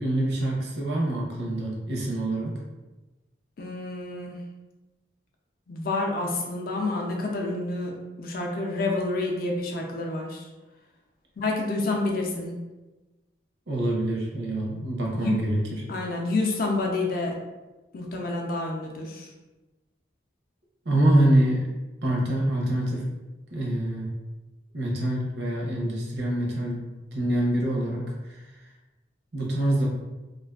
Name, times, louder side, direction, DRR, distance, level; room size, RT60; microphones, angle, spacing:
voice 1, 0.0-2.5 13.7-15.6 20.9-21.6 22.0-23.0 23.5-24.1 24.7-26.8 27.1-28.4 29.3-29.9, right 1 dB, 65° right, -2 dB, 0.6 m, -25 dB
voice 2, 3.6-4.4 5.7-10.5 11.4-12.5 15.1-15.3 15.9-17.3 17.9-19.3, left 2 dB, 50° left, 0 dB, 0.4 m, -28 dB
2.4 x 2.4 x 2.3 m, 1.1 s
head